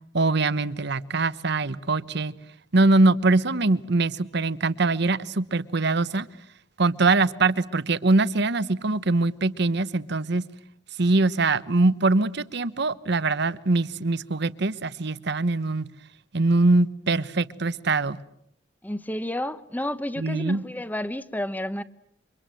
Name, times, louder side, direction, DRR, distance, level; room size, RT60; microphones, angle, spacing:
voice 1, 0.1-2.3 2.7-6.3 6.8-10.4 11.0-15.9 16.3-18.2 20.2-20.6, right 3 dB, 65° right, 1.0 m, -23 dB
voice 2, 18.8-21.8, left 1 dB, 10° left, 1.0 m, -31 dB
29.0 x 25.0 x 7.7 m
head